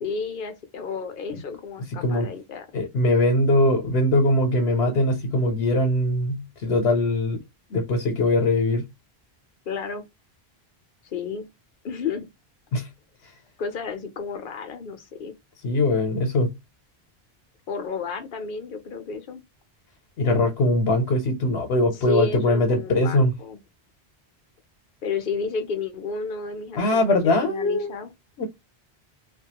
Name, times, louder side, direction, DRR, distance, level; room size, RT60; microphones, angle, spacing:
voice 1, 0.0-2.7 9.7-10.0 11.0-11.5 11.8-12.3 13.6-15.3 17.7-19.4 21.9-23.6 25.0-28.1, left 4 dB, 60° left, 0.7 m, -32 dB
voice 2, 2.7-7.4 7.7-8.8 12.7-12.9 15.6-16.5 20.2-23.3 26.8-27.9 28.4-28.5, left 1 dB, 85° left, 0.9 m, -21 dB
2.3 x 2.2 x 2.7 m
omnidirectional pair, 1.0 m